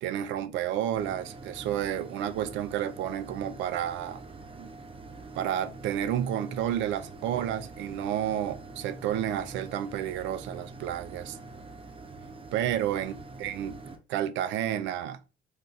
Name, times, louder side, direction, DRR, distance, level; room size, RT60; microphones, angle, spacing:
voice 1, 0.0-4.2 4.6-4.7 5.3-11.4 12.5-13.8 14.1-15.2, right 10 dB, 75° right, 0.4 m, -31 dB
sound 1, 0.9-14.0, right 3 dB, 30° right, 0.8 m, -45 dB
2.5 x 2.3 x 3.8 m
supercardioid pair, 70°, 19 cm